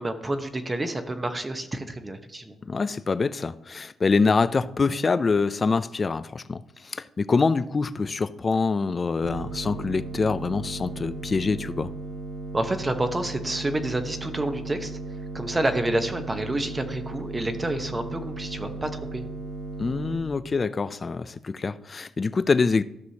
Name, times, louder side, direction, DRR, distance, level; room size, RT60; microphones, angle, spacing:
voice 1, 0.0-2.6 12.5-15.0 15.3-19.2, right 1 dB, 20° right, 1.0 m, -29 dB
voice 2, 2.7-11.9 19.8-22.8, left 4 dB, 30° left, 0.4 m, -25 dB
sound 1, 9.2-20.1, right 2 dB, 80° right, 2.0 m, -36 dB
14.0 x 6.2 x 2.9 m
cardioid pair, 90°, 0 cm